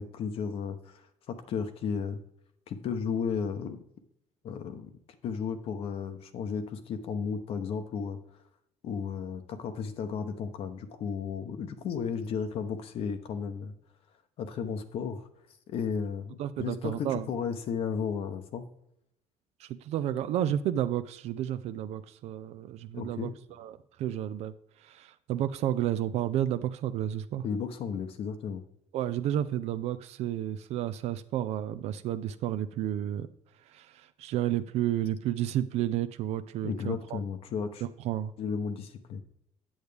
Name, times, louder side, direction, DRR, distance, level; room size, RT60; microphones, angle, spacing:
voice 1, 0.0-2.2 2.7-3.8 4.4-4.9 5.2-8.2 8.8-13.7 14.4-15.3 15.7-18.6 22.9-23.3 27.4-28.6 36.6-37.8 38.4-39.2, left 6 dB, 55° left, 8 dB, 0.7 m, -34 dB
voice 2, 16.4-17.3 19.6-23.3 23.6-24.5 24.8-27.4 28.9-33.3 33.7-37.2 37.8-38.3, right 11 dB, 65° right, 12 dB, 0.4 m, -31 dB
8.7 x 8.0 x 3.3 m, 0.76 s
cardioid pair, 170°, 12 cm